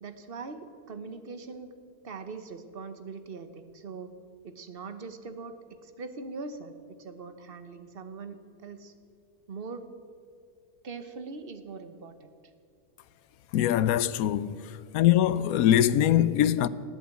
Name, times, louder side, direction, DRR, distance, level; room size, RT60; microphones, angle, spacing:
voice 1, 0.0-1.7 2.0-4.1 4.4-5.5 5.8-8.9 9.5-9.9 10.8-12.3, right 4 dB, 40° right, 1.1 m, -41 dB
voice 2, 13.5-14.5 14.9-16.7, left 11 dB, 75° left, 1.0 m, -22 dB
18.5 x 8.7 x 8.4 m
omnidirectional pair, 1.6 m